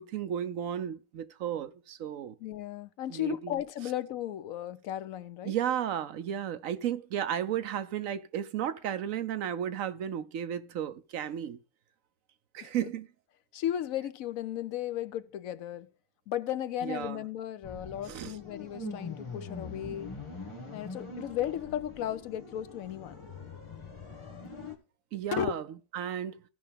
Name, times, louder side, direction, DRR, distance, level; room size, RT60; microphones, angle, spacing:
voice 1, 0.0-2.3 3.1-3.6 5.4-11.6 12.5-13.1 16.8-17.2 18.1-18.3 25.1-25.6 25.9-26.4, right 10 dB, 75° right, 1.1 m, -34 dB
voice 2, 2.4-5.6 12.6-12.9 13.5-15.9 16.3-20.1 20.7-23.2 25.3-25.5, left 11 dB, 85° left, 1.1 m, -35 dB
sound 1, 17.6-24.7, left 3 dB, 20° left, 1.6 m, -43 dB
15.5 x 5.5 x 3.5 m
omnidirectional pair, 1.4 m